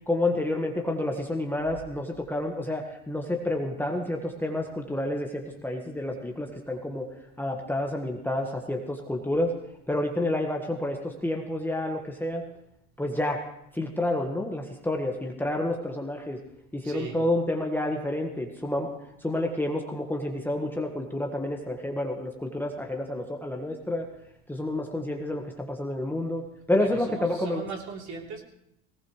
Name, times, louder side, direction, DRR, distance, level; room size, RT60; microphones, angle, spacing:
voice 1, 0.1-7.1 7.4-9.5 9.9-12.4 13.0-13.4 13.7-16.4 16.7-18.9 19.2-24.1 24.5-26.4 26.7-27.6, left 1 dB, 5° left, 1 dB, 1.6 m, -29 dB
voice 2, 16.8-17.2 26.8-28.4, right 5 dB, 45° right, -1 dB, 3.6 m, -38 dB
19.0 x 18.0 x 3.3 m, 0.77 s
hypercardioid pair, 90°, 38 cm